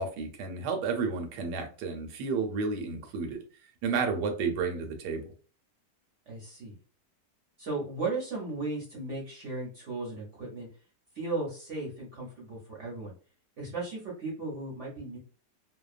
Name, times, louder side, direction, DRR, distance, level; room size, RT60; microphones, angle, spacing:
voice 1, 0.0-3.4 3.8-5.2, right 4 dB, 75° right, 4 dB, 1.2 m, -31 dB
voice 2, 6.3-6.8 7.6-10.7 11.1-13.1 13.6-15.2, right 3 dB, 55° right, -4 dB, 0.9 m, -36 dB
2.8 x 2.1 x 2.3 m, 0.39 s
omnidirectional pair, 1.8 m